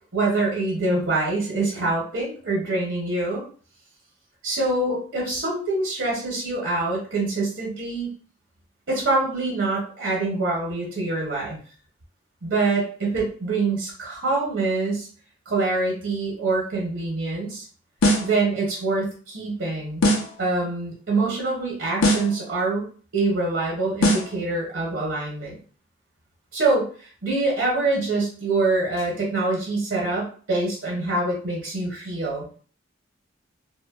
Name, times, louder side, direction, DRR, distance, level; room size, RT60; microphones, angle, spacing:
voice 1, 0.1-3.4 4.4-8.1 8.9-11.6 12.4-15.1 15.5-17.6 18.2-20.0 20.4-22.9 23.1-25.6 26.5-32.5, right 3 dB, 70° right, -4 dB, 0.7 m, -25 dB
sound 1, 18.0-18.4 20.0-20.4 22.0-22.4 24.0-24.4, left 1 dB, 85° left, 0.6 m, -20 dB
2.6 x 2.1 x 2.2 m, 0.42 s
head